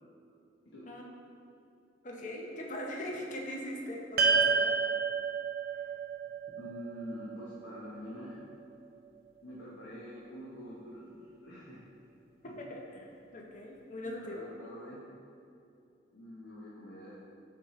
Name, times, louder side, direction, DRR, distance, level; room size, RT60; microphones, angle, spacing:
voice 1, 2.0-4.8 12.6-13.1 13.3-14.5, left 1 dB, 45° left, -1 dB, 0.7 m, -40 dB
sound 1, 4.2-8.6, right 5 dB, 55° right, 0.5 m, -31 dB
voice 2, 6.6-8.4 9.4-11.8 14.0-15.1 16.1-17.1, equal, 90° left, -7 dB, 0.9 m, -46 dB
7.2 x 4.4 x 3.1 m, 2.6 s
head